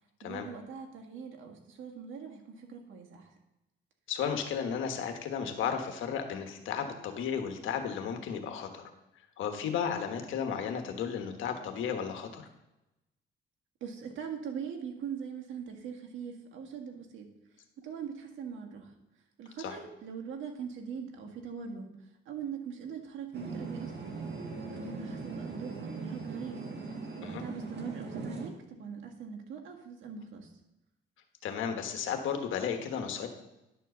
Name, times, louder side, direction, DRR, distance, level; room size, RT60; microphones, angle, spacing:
voice 1, 0.2-3.3 13.8-17.3 17.8-18.9 19.4-21.9 22.3-24.2 24.6-26.6 27.2-30.5, right 7 dB, 80° right, 2 dB, 1.7 m, -41 dB
voice 2, 4.1-8.8 9.4-12.4 19.6-19.8 27.2-27.4 31.4-33.3, left 7 dB, 80° left, 5 dB, 1.3 m, -34 dB
sound 1, 23.3-28.5, right 3 dB, 60° right, 1.8 m, -40 dB
10.5 x 4.5 x 6.7 m, 0.93 s
cardioid pair, 90°, 20 cm